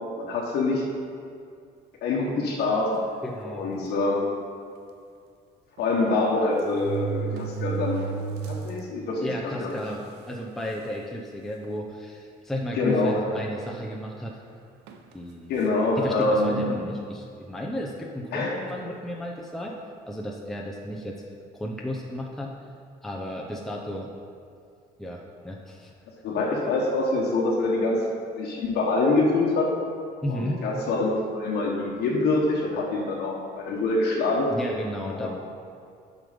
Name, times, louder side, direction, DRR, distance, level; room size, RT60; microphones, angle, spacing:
voice 1, 0.2-0.8 2.0-3.0 3.5-4.3 5.8-8.0 8.5-9.7 12.7-13.3 15.5-16.7 18.3-18.5 26.2-28.0 28.3-29.7 30.3-34.5 35.1-35.3, left 2 dB, 75° left, -3 dB, 1.3 m, -25 dB
sound 1, 2.9-3.2 4.0-4.1 4.4-4.5 5.8-5.9 6.6-8.8 9.3-9.4 10.2-10.3 10.7-11.0 11.6-11.8 13.1-13.9 14.9-15.1, right 7 dB, 85° right, 0.6 m, -33 dB
voice 2, 3.2-3.7 9.2-14.4 15.1-15.5 16.0-19.7 20.1-21.2 21.5-22.5 23.0-24.1 25.0-25.9 30.2-30.6 34.5-35.3, equal, ahead, -2 dB, 0.7 m, -33 dB
7.5 x 5.2 x 5.1 m, 2.3 s
cardioid pair, 110°, 17 cm